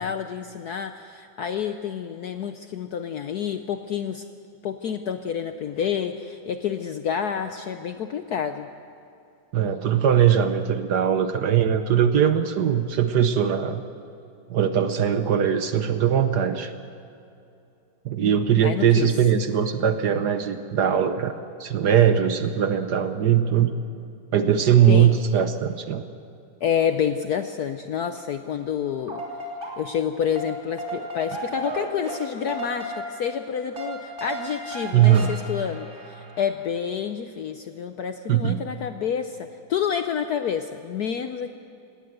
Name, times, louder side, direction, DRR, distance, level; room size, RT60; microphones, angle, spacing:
voice 1, 0.0-4.2 4.6-8.7 18.6-19.2 24.8-25.2 26.6-29.2 29.8-41.5, left 8 dB, 70° left, 8 dB, 0.9 m, -28 dB
voice 2, 9.5-13.8 14.5-16.7 18.0-23.7 24.3-26.0 34.9-35.3 38.3-38.6, right 9 dB, 60° right, 9 dB, 1.2 m, -20 dB
sound 1, 28.9-30.1 30.3-36.5, right 1 dB, 35° right, 3.5 m, -35 dB
18.5 x 18.5 x 7.8 m, 2.6 s
omnidirectional pair, 2.3 m